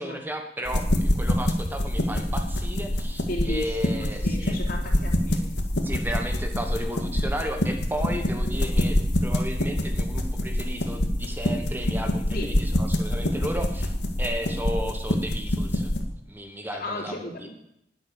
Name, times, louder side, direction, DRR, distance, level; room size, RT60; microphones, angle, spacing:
voice 1, 0.0-4.6 5.8-13.9 14.2-15.9 16.3-17.5, equal, 10° right, 4 dB, 1.3 m, -34 dB
sound 1, 0.6-16.0, left 1 dB, 75° left, 2.0 m, -26 dB
voice 2, 3.2-5.5 12.3-12.5 16.7-17.5, left 2 dB, 55° left, 1 dB, 3.4 m, -35 dB
20.0 x 7.8 x 7.1 m, 0.77 s
head